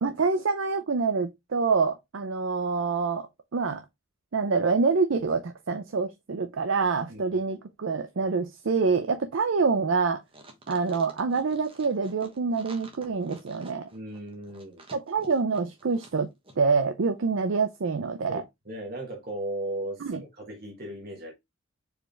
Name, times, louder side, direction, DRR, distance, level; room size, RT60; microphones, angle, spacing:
voice 1, 0.0-3.3 3.5-3.8 4.3-10.2 10.7-13.9 14.9-16.3 16.6-18.4 20.0-20.2, right 4 dB, 65° right, 0.5 m, -26 dB
sound 1, 10.3-16.2 16.4-16.5, right 2 dB, 25° right, 1.1 m, -49 dB
voice 2, 13.9-14.8 18.3-21.3, right 1 dB, 45° right, 1.3 m, -37 dB
4.6 x 3.5 x 3.2 m
head